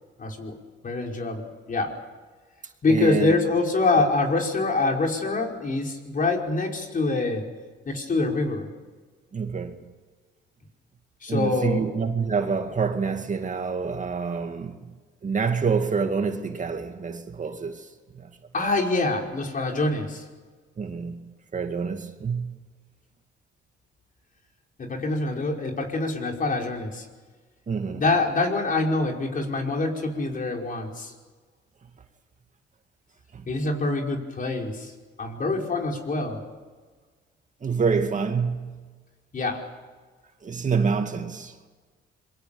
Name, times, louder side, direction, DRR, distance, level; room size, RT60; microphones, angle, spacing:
voice 1, 0.2-0.6 0.8-2.0 2.8-7.4 7.8-8.7 11.2-11.8 18.5-20.2 24.8-27.0 27.9-31.1 33.5-34.9 35.2-36.4 39.3-39.6, left 3 dB, 45° left, 5.2 m, -25 dB
voice 2, 2.9-3.4 3.9-4.0 9.3-9.9 11.3-14.9 15.2-17.9 18.1-18.3 18.6-18.7 20.8-22.6 27.7-28.0 33.3-33.4 37.6-38.8 40.4-41.5, right 5 dB, 40° right, 2.3 m, -27 dB
27.0 x 23.0 x 7.1 m
cardioid pair, 90°, 20 cm